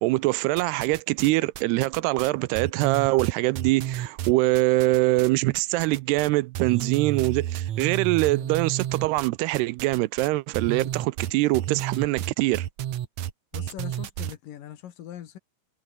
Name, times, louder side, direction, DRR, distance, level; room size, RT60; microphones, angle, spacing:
voice 1, 0.0-12.7, right 20 dB, 80° right, 2.6 m, -23 dB
sound 1, 0.6-1.3 1.6-5.3 5.5-6.3 6.5-14.4, right 11 dB, 60° right, 2.0 m, -31 dB
voice 2, 13.5-15.4, left 11 dB, 65° left, 2.8 m, -40 dB
omnidirectional pair, 4.7 m